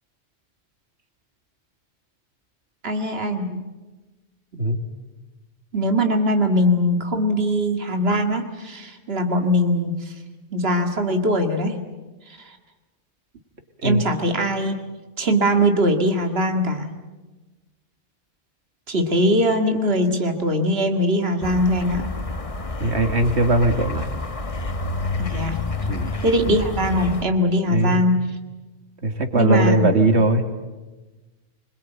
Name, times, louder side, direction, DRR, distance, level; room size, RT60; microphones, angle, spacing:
voice 1, 2.8-3.7 5.7-10.1 10.5-11.8 12.4-12.6 13.8-14.8 15.2-16.9 18.9-22.1 25.2-25.6 26.2-28.4 29.3-29.9, equal, 65° right, 5 dB, 2.3 m, -21 dB
sound 1, 21.4-27.2, left 3 dB, 30° left, 1.3 m, -29 dB
voice 2, 22.8-24.1 25.9-26.1 27.7-28.1 29.0-30.4, right 2 dB, 85° right, 6 dB, 2.6 m, -19 dB
25.5 x 22.0 x 9.2 m, 1.2 s
omnidirectional pair, 1.1 m